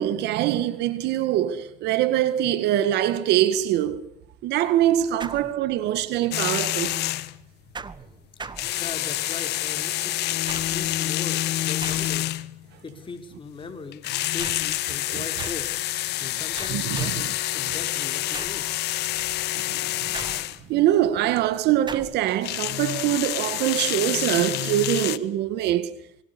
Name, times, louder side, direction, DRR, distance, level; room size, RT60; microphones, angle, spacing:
voice 1, 0.0-4.1 4.4-7.0 15.1-15.2 16.7-17.3 19.6-20.1 20.7-25.9, right 12 dB, 85° right, 2.0 m, -23 dB
sound 1, 5.2-6.0 7.7-9.3 10.5-11.0 11.8-12.4 14.4-14.8 15.4-15.8 16.6-17.4 18.3-18.7 20.1-20.8 21.9-22.3, right 5 dB, 25° right, 1.5 m, -40 dB
sound 2, 6.3-7.4 8.4-12.6 13.9-20.6 22.3-25.2, left 15 dB, 80° left, 1.4 m, -27 dB
voice 2, 7.7-8.1 8.8-10.1 10.7-12.3 12.8-15.7 16.2-18.6, left 4 dB, 30° left, 5.0 m, -39 dB
26.5 x 23.0 x 7.0 m
cardioid pair, 110°, 17 cm